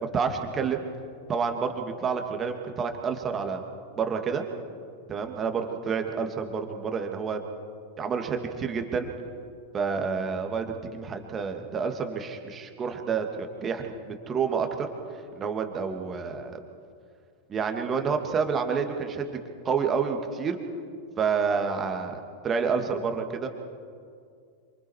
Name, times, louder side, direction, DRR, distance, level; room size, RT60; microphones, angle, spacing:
voice 1, 0.1-0.8 1.3-3.6 4.0-4.4 5.1-7.4 8.0-9.1 9.7-10.7 10.9-14.9 15.4-16.6 17.5-19.3 19.6-20.6 21.2-23.5, right 6 dB, 25° right, 5 dB, 2.5 m, -29 dB
27.5 x 26.0 x 4.8 m, 2.3 s
figure-of-eight pair, 90°, 0 cm